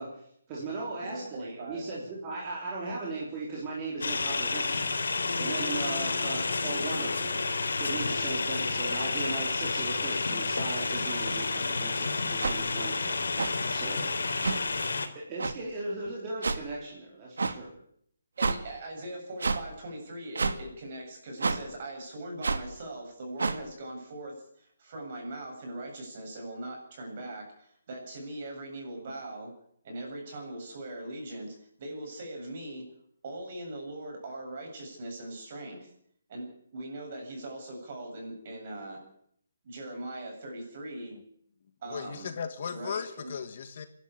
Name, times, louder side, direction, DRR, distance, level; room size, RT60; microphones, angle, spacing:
voice 1, 0.0-7.4 7.8-13.2 13.7-14.0 15.1-17.7, right 2 dB, 20° right, -5 dB, 3.8 m, -37 dB
voice 2, 1.1-1.8 18.4-29.5 29.8-32.8 33.2-35.9 36.3-36.5 36.7-39.0 39.6-41.1 41.8-42.3 42.7-43.3, right 1 dB, 35° right, 1 dB, 8.0 m, -40 dB
sound 1, 4.0-15.1, left 3 dB, 85° left, 3.2 m, -30 dB
sound 2, 12.4-12.5 13.4-13.5 14.4-14.6 15.4-15.5 16.4-16.6 17.4-17.5 18.4-18.6 19.4-19.6 20.4-20.6 21.4-21.6 22.4-22.6 23.4-23.6, right 4 dB, 90° right, 1.9 m, -28 dB
voice 3, 41.9-43.9, left 6 dB, 40° left, 9 dB, 1.6 m, -36 dB
27.0 x 11.5 x 8.6 m, 0.67 s
hypercardioid pair, 175°, 0 cm